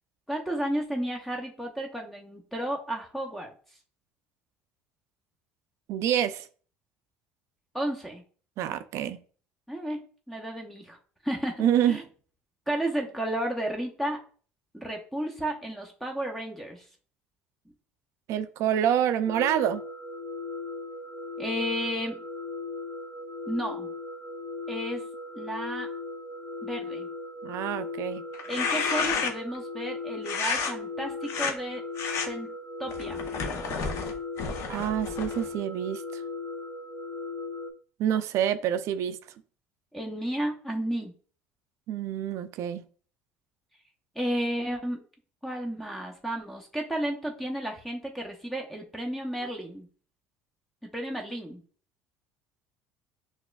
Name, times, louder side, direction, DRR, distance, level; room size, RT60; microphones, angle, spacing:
voice 1, 0.3-3.5 7.7-8.2 9.7-10.0 10.3-11.0 11.2-12.0 12.7-14.2 14.7-16.8 21.4-22.2 23.5-23.9 24.7-25.0 25.3-25.9 26.6-27.1 28.5-31.8 32.2-32.5 32.8-33.3 39.9-41.1 44.2-45.0 45.4-49.9 50.8-51.6, right 1 dB, 5° left, 0.7 m, -32 dB
voice 2, 5.9-6.5 8.6-9.2 11.6-12.0 18.3-19.8 27.4-28.2 34.7-36.2 38.0-39.2 41.9-42.8, right 10 dB, 60° right, 0.4 m, -27 dB
sound 1, 19.3-37.7, left 3 dB, 35° left, 0.9 m, -37 dB
sound 2, 28.3-29.6 30.2-30.7 31.2-31.5 32.0-32.3 32.9-35.5, left 5 dB, 55° left, 0.7 m, -31 dB
5.8 x 2.4 x 2.3 m
supercardioid pair, 100°, 6 cm